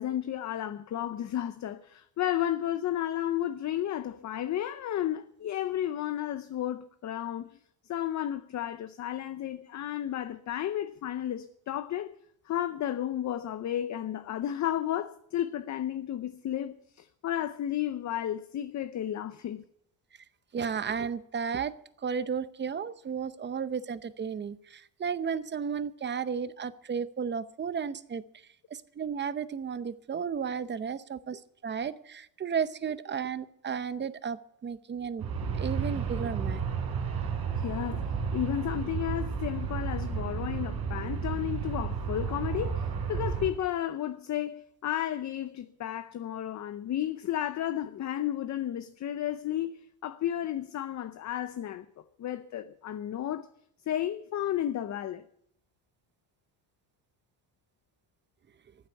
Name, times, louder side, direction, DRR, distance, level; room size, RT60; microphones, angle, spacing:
voice 1, 0.0-7.6 7.8-12.1 12.4-19.6 37.6-38.0 38.3-51.9 52.2-53.5 53.9-55.2, left 11 dB, 40° left, 0.7 m, -33 dB
voice 2, 20.5-21.7 22.0-28.2 28.7-35.2 35.6-36.6, right 6 dB, 25° right, 0.7 m, -33 dB
Aircraft, 35.2-43.5, right 6 dB, 60° right, 3.9 m, -32 dB
14.5 x 8.0 x 9.0 m
cardioid pair, 125°, 42 cm